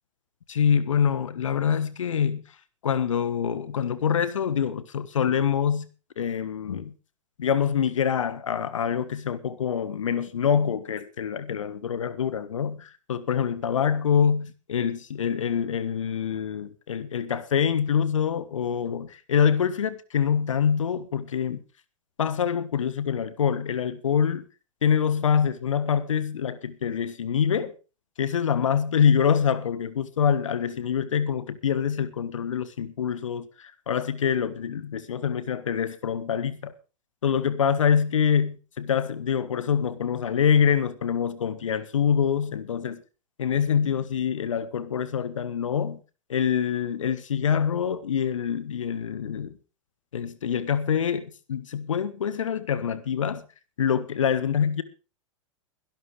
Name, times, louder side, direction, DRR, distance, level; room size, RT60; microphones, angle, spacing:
voice 1, 0.5-2.4 2.8-5.9 6.2-6.9 7.4-21.6 22.2-24.4 24.8-27.7 28.2-36.7 37.2-43.0 43.4-46.0 46.3-49.6 50.1-53.4 53.8-54.8, left 7 dB, 70° left, 1.4 m, -25 dB
22.0 x 12.0 x 3.3 m
figure-of-eight pair, 95°, 17 cm